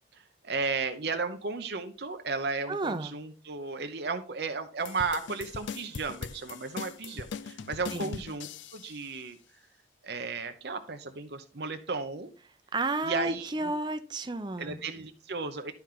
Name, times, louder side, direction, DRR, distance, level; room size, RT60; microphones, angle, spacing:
voice 1, 0.4-8.5 8.7-9.4 10.0-12.3 13.0-13.7 14.6-15.7, right 4 dB, 60° right, 0.7 m, -34 dB
voice 2, 2.7-3.1 7.9-8.2 12.7-14.8, right 2 dB, 25° right, 0.6 m, -32 dB
sound 1, 4.8-9.0, left 5 dB, 85° left, 0.5 m, -40 dB
11.5 x 4.5 x 3.7 m
head